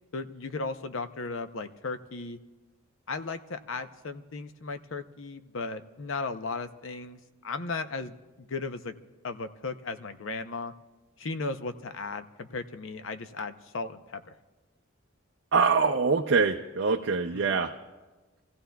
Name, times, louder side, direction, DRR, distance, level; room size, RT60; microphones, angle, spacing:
voice 1, 0.1-2.4 3.1-8.9 9.2-10.7 11.2-14.3 17.3-17.6, left 3 dB, 65° left, 10 dB, 0.7 m, -36 dB
voice 2, 15.5-17.7, right 4 dB, 60° right, 3 dB, 0.5 m, -24 dB
28.5 x 15.5 x 2.3 m, 1.2 s
head